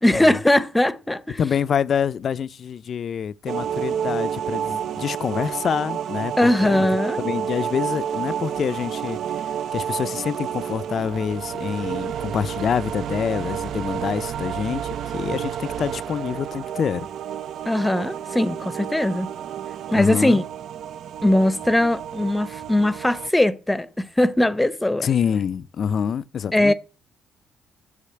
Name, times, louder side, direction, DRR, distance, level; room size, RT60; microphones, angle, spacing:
voice 1, 0.0-1.4 6.4-7.2 17.7-19.3 19.9-20.4 21.2-25.1 26.5-26.7, left 1 dB, 10° left, 0.7 m, -20 dB
voice 2, 1.4-6.9 7.2-9.2 9.7-14.8 15.1-17.1 19.9-20.4 25.0-26.7, left 7 dB, 55° left, 0.5 m, -26 dB
sound 1, 3.5-23.3, right 9 dB, 70° right, 0.5 m, -30 dB
8.5 x 6.5 x 8.4 m
cardioid pair, 90°, 0 cm